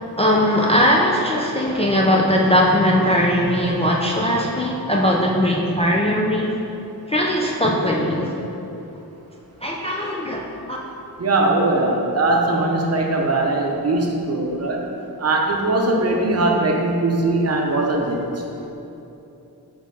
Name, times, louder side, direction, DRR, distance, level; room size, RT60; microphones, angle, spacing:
voice 1, 0.2-6.5 7.1-8.3 9.6-10.4 10.7-10.8, equal, 15° left, -3 dB, 0.3 m, -19 dB
voice 2, 11.2-14.8 15.2-18.2, right 2 dB, 40° right, 0 dB, 0.7 m, -20 dB
6.4 x 4.6 x 4.0 m, 2.9 s
wide cardioid pair, 170°, 38 cm